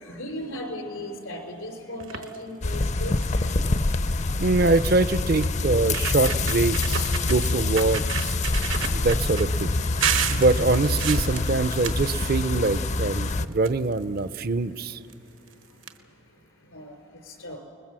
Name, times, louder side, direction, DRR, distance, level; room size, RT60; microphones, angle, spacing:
voice 1, 0.0-3.1 16.7-16.9 17.4-17.6, left 1 dB, 90° left, 5 dB, 3.8 m, -36 dB
sound 1, 2.0-2.4 2.9-3.0 3.2-3.5 4.7-4.8 5.4-5.5 5.8-7.4 7.8-9.4 10.0-12.8 13.1-14.2 15.1-15.2 15.5-15.6 15.8-15.9, right 8 dB, 80° right, 1.3 m, -31 dB
sound 2, 2.6-13.5, left 3 dB, 35° left, 0.5 m, -26 dB
voice 2, 4.4-8.3 8.6-9.7 10.3-15.0, right 3 dB, 45° right, 14 dB, 0.5 m, -24 dB
26.0 x 21.0 x 7.6 m, 2.7 s
head